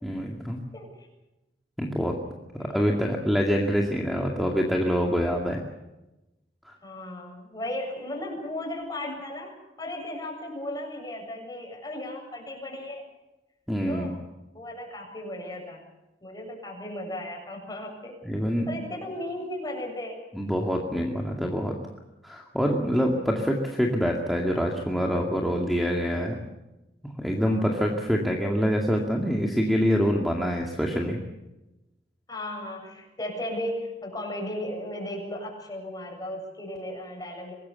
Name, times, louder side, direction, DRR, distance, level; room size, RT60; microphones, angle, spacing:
voice 1, 0.0-0.6 1.8-2.2 2.6-5.6 6.7-6.8 13.7-14.1 18.2-18.8 20.3-21.7 22.2-26.4 27.2-31.2, equal, ahead, 0 dB, 2.3 m, -25 dB
voice 2, 0.7-1.1 2.6-3.0 6.8-13.1 13.9-14.2 14.5-15.8 16.2-18.2 18.7-20.2 22.9-23.0 27.4-28.0 32.3-37.5, left 1 dB, 25° left, 1 dB, 7.7 m, -36 dB
25.0 x 20.5 x 7.2 m, 0.98 s
head